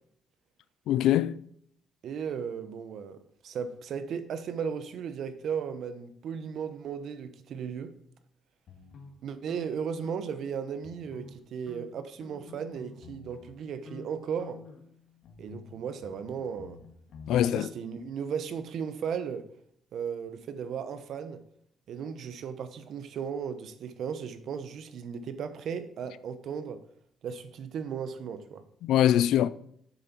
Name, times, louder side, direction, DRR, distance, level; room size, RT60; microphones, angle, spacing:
voice 1, 0.9-1.4 17.3-17.7 28.8-29.5, left 11 dB, 85° left, 0.4 m, -23 dB
voice 2, 2.0-3.2 3.4-7.9 9.2-14.6 15.4-16.8 17.3-19.5 19.9-21.4 21.9-26.8 27.2-28.6, right 7 dB, 70° right, 0.9 m, -36 dB
sound 1, 8.7-10.5 10.8-11.4 11.7-13.6 13.9-14.1 14.4-17.4, left 5 dB, 65° left, 2.0 m, -49 dB
8.3 x 6.7 x 4.5 m
cardioid pair, 90°, 0 cm